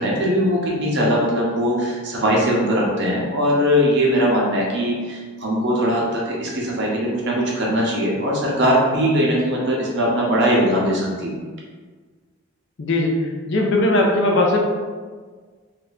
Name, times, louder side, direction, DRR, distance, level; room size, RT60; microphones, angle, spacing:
voice 1, 0.0-11.3, equal, 50° right, -4 dB, 0.8 m, -20 dB
voice 2, 12.8-13.1 13.5-14.7, left 2 dB, 55° left, 0 dB, 0.5 m, -19 dB
2.7 x 2.5 x 4.0 m, 1.5 s
head